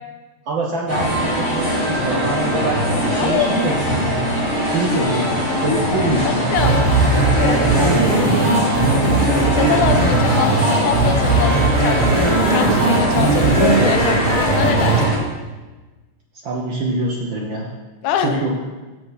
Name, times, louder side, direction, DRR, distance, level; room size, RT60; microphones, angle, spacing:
voice 1, 0.5-4.2 4.6-5.3 5.6-6.5 7.8-8.4 16.4-17.7 18.2-18.5, right 3 dB, 80° right, -2 dB, 1.0 m, -24 dB
sound 1, 0.9-15.2, equal, 30° left, 2.3 m, -21 dB
voice 2, 3.2-3.5 4.9-5.1 5.7-7.6 9.5-15.2 18.0-18.5, left 8 dB, 85° left, 6 dB, 2.2 m, -24 dB
sound 2, 6.6-15.0, right 3 dB, 45° right, 3.6 m, -18 dB
9.2 x 7.7 x 4.1 m, 1.2 s
omnidirectional pair, 3.4 m